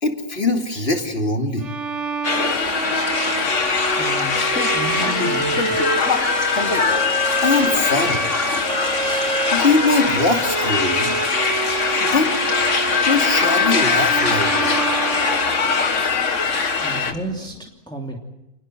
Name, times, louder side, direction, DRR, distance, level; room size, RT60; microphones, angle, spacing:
voice 1, 0.0-1.7 7.4-8.2 9.5-11.2 12.0-12.3 13.1-14.8, left 3 dB, 50° left, 4 dB, 3.0 m, -21 dB
Bowed string instrument, 1.6-15.9, right 5 dB, 65° right, 1.6 m, -28 dB
sound 1, 2.2-17.1, left 5 dB, 65° left, 2.1 m, -21 dB
Liquid, 2.4-17.6, left 1 dB, 85° left, 4.7 m, -38 dB
voice 2, 3.9-4.4 4.7-5.8 16.8-18.2, right 2 dB, 5° left, 0 dB, 2.9 m, -31 dB
29.0 x 20.0 x 7.9 m, 0.91 s
omnidirectional pair, 1.3 m